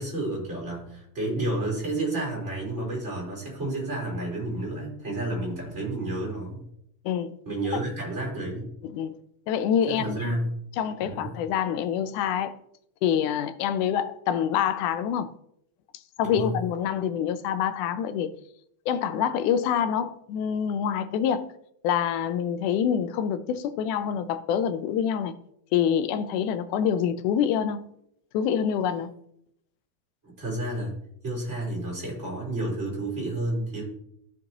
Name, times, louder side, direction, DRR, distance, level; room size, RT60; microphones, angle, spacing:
voice 1, 0.0-6.6 7.5-8.7 9.9-10.5 11.0-11.3 16.2-16.6 30.2-30.9 31.2-33.8, right 2 dB, 20° right, 4.2 m, -31 dB
voice 2, 7.1-7.4 8.8-9.2 9.5-10.4 10.8-12.6 13.0-15.3 16.2-18.4 18.9-21.5 21.8-25.3 25.7-27.9 28.3-29.1, left 8 dB, 80° left, 2.0 m, -26 dB
14.0 x 5.9 x 2.9 m
omnidirectional pair, 3.6 m